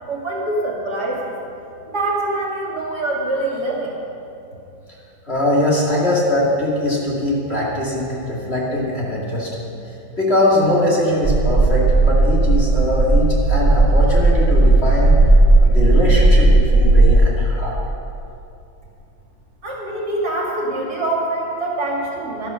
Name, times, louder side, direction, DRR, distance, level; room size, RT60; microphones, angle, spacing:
voice 1, 0.1-1.3 1.9-3.9 19.6-22.5, right 2 dB, 55° right, -2 dB, 2.6 m, -24 dB
voice 2, 5.3-9.7 10.2-15.2 15.6-17.7, left 1 dB, 35° left, -5 dB, 2.4 m, -21 dB
sound 1, 11.2-17.1, right 2 dB, 25° right, 1.5 m, -14 dB
12.5 x 12.0 x 5.6 m, 2.8 s
omnidirectional pair, 2.1 m